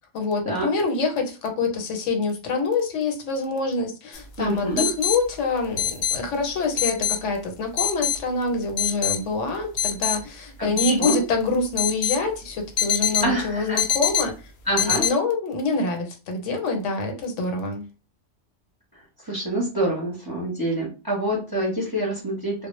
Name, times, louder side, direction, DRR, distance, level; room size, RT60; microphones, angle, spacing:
voice 1, 0.1-14.4 14.8-17.8, left 3 dB, 90° left, 1.0 m, -26 dB
sound 1, 4.1-4.2 4.8-5.2 5.8-6.2 6.8-7.2 7.8-8.2 8.8-9.2 9.8-10.2 10.8-11.2 11.8-12.2 12.8-13.3 13.8-14.2 14.8-15.1, left 9 dB, 65° left, 0.7 m, -23 dB
voice 2, 4.4-4.9 10.6-11.2 13.2-13.8 14.7-15.0 19.2-22.5, right 1 dB, 25° right, 0.6 m, -26 dB
2.0 x 2.0 x 3.0 m
omnidirectional pair, 1.2 m